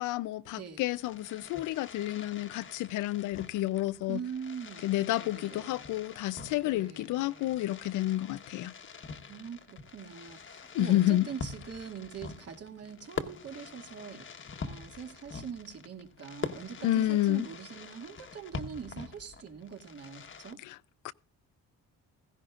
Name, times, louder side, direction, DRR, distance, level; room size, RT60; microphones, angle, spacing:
voice 1, 0.0-4.2 4.8-8.7 10.7-11.3 16.8-17.5 20.6-20.8 21.0-21.1, left 15 dB, 90° left, 0.6 m, -30 dB
Fireworks, 0.7-20.5, left 5 dB, 40° left, 1.3 m, -45 dB
voice 2, 4.1-4.9 5.2-5.9 6.6-7.6 9.3-14.2 14.6-20.6, right 7 dB, 55° right, 2.3 m, -43 dB
16.0 x 16.0 x 2.5 m
cardioid pair, 90°, 30 cm